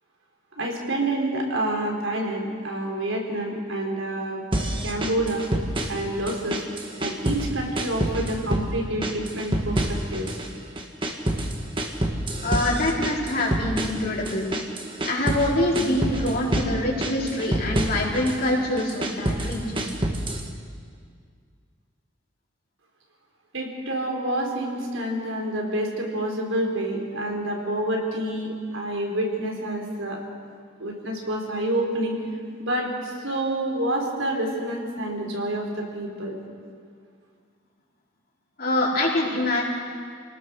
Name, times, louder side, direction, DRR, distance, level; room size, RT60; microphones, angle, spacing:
voice 1, 0.6-4.4 4.8-5.5 5.9-6.6 7.0-10.4 23.5-30.2 30.8-32.2 32.6-36.3, right 1 dB, 85° right, 0 dB, 4.5 m, -28 dB
sound 1, 4.5-6.0 6.3-7.5 7.8-8.7 9.0-10.5 10.8-15.5 15.7-16.7 17.0-18.4 18.8-20.5, right 1 dB, 25° right, 1.9 m, -27 dB
voice 2, 12.4-14.5 15.0-19.9 38.6-39.6, left 1 dB, 50° left, -3 dB, 4.6 m, -25 dB
29.0 x 19.0 x 6.6 m, 2.1 s
head